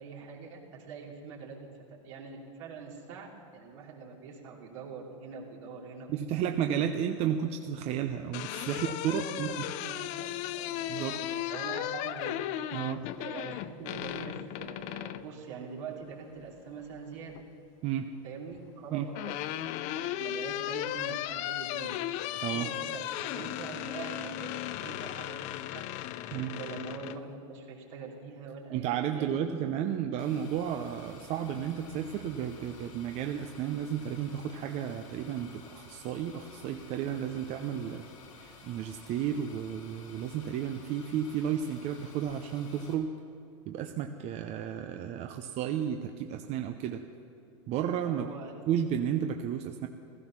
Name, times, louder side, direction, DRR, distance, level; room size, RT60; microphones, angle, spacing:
voice 1, 0.0-6.5 9.1-12.4 12.7-12.9 13.2-17.4 18.2-21.9 22.5-25.8 26.2-29.6 48.1-48.5, right 5 dB, 70° right, -1 dB, 3.0 m, -44 dB
voice 2, 6.1-9.5 10.9-11.2 12.7-13.0 17.8-18.2 18.9-19.1 22.4-22.7 26.3-26.6 28.7-38.0 38.4-43.1 43.7-47.0 47.7-48.3 48.7-49.9, right 9 dB, 40° right, 6 dB, 0.7 m, -32 dB
sound 1, 8.0-15.3 16.8-17.4 18.7-27.2, left 13 dB, 45° left, 0.5 m, -36 dB
sound 2, 30.2-42.9, left 4 dB, 85° left, 2.8 m, -52 dB
16.0 x 14.0 x 6.0 m, 2.8 s
supercardioid pair, 120°, 16 cm